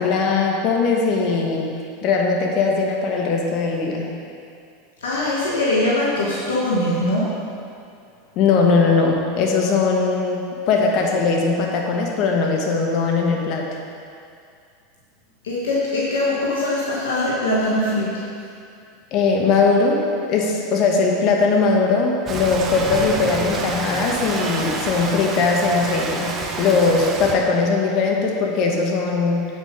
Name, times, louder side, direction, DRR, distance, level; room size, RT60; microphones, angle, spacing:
voice 1, 0.0-1.7 2.0-4.1 8.4-13.6 19.1-20.0 20.3-29.5, left 4 dB, 50° left, 0 dB, 1.2 m, -20 dB
voice 2, 5.0-7.4 15.4-18.2, left 1 dB, 80° left, -6 dB, 1.4 m, -22 dB
Rain, 22.3-27.3, right 4 dB, 30° right, 1.0 m, -28 dB
8.3 x 5.6 x 5.1 m, 2.4 s
hypercardioid pair, 90°, 0 cm